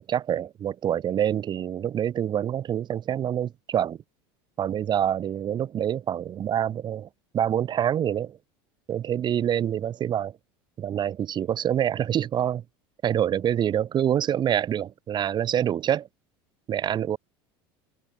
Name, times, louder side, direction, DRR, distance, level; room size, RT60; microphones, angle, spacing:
voice 1, 0.0-4.0 4.6-7.1 7.3-8.4 8.9-10.3 10.8-12.6 13.0-16.1 16.7-17.2, right 10 dB, 35° right, 2.4 m, -26 dB
supercardioid pair, 110°, 12 cm